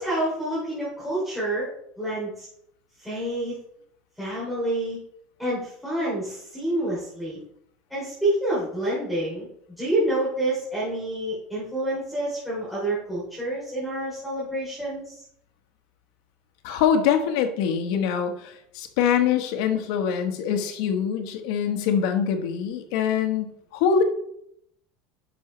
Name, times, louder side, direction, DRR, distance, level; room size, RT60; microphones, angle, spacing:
voice 1, 0.0-1.7 2.0-2.5 3.0-3.5 4.2-5.0 5.4-7.4 7.9-9.5 9.8-15.2, right 1 dB, ahead, -10 dB, 3.0 m, -28 dB
voice 2, 16.6-24.0, left 7 dB, 70° left, 6 dB, 1.3 m, -24 dB
11.0 x 5.9 x 3.2 m, 0.71 s
cardioid pair, 160°, 3 cm